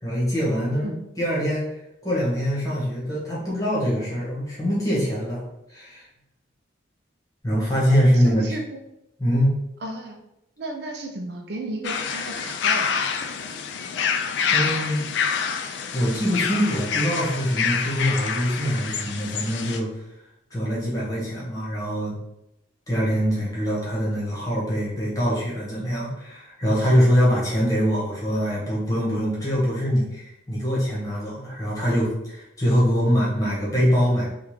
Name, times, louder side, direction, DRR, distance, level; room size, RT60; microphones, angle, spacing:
voice 1, 0.0-1.7 2.0-6.1 7.4-8.4 9.2-9.5 14.5-15.0 15.9-20.0 20.5-22.2 22.9-34.2, equal, 20° left, -6 dB, 1.1 m, -23 dB
voice 2, 8.1-8.6 9.8-10.2 10.6-13.1, right 2 dB, 55° right, 2 dB, 0.4 m, -33 dB
sound 1, 11.8-19.8, left 6 dB, 65° left, 0.3 m, -27 dB
3.5 x 2.4 x 3.1 m, 0.85 s
head